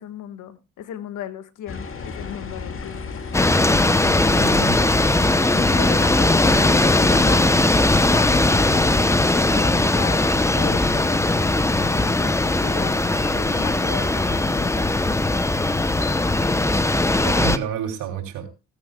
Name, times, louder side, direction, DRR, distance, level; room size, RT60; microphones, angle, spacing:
voice 1, 0.0-3.1 5.5-7.5 8.0-11.6 11.9-15.1, left 10 dB, 80° left, 11 dB, 1.6 m, -36 dB
sound 1, 1.7-7.2, left 5 dB, 45° left, 2.3 m, -33 dB
sound 2, 3.3-17.6, left 2 dB, 10° left, 0.8 m, -19 dB
voice 2, 4.1-4.8 17.2-18.5, right 8 dB, 90° right, 3 dB, 3.2 m, -30 dB
sound 3, 5.6-15.5, left 4 dB, 30° left, 2.1 m, -42 dB
16.5 x 15.0 x 2.3 m, 0.29 s
cardioid pair, 90°, 30 cm